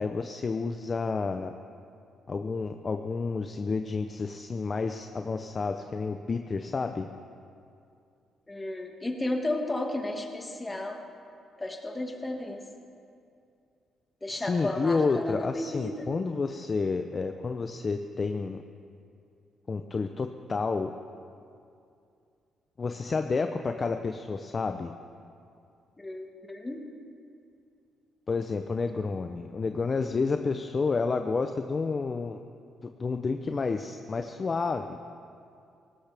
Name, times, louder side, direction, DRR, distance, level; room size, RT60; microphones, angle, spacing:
voice 1, 0.0-1.5 2.3-7.1 14.3-18.6 19.7-20.9 22.8-24.9 28.3-32.4 32.8-35.0, left 4 dB, 35° left, 7 dB, 0.6 m, -30 dB
voice 2, 8.5-11.0 11.6-12.6 14.2-16.1 26.0-26.8, left 1 dB, 15° left, 2 dB, 1.9 m, -33 dB
18.0 x 18.0 x 3.5 m, 2.5 s
cardioid pair, 90°, 0 cm